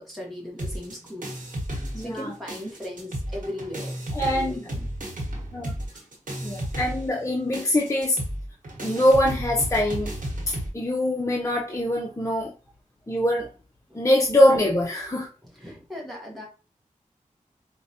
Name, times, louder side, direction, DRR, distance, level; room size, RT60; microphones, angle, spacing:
voice 1, 0.0-1.3 1.9-4.9 5.9-6.1 13.9-14.0 15.4-16.5, left 1 dB, ahead, -3 dB, 1.0 m, -38 dB
sound 1, 0.6-2.2 2.5-10.7, equal, 75° right, 1.0 m, -33 dB
voice 2, 1.9-2.3 4.1-4.5 5.5-5.7 6.4-8.2 8.8-10.1 10.5-12.5 13.1-13.5 13.9-15.3, left 1 dB, 20° left, -1 dB, 0.6 m, -23 dB
4.4 x 2.1 x 2.7 m, 0.34 s
wide cardioid pair, 55°, 14 cm